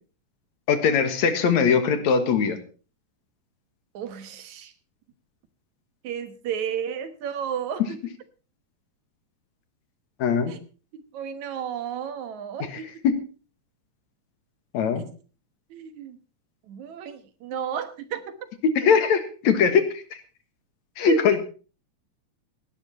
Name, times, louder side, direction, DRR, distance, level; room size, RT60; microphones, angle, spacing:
voice 1, 0.7-2.6 10.2-10.5 13.0-13.1 14.7-15.1 18.8-20.0 21.0-21.4, left 6 dB, 70° left, 9 dB, 2.9 m, -21 dB
voice 2, 3.9-4.7 6.0-8.0 10.5-10.6 10.9-12.9 15.7-16.2 16.7-18.4 21.1-21.2, right 8 dB, 75° right, 10 dB, 2.7 m, -32 dB
17.5 x 11.5 x 4.2 m, 0.36 s
omnidirectional pair, 3.3 m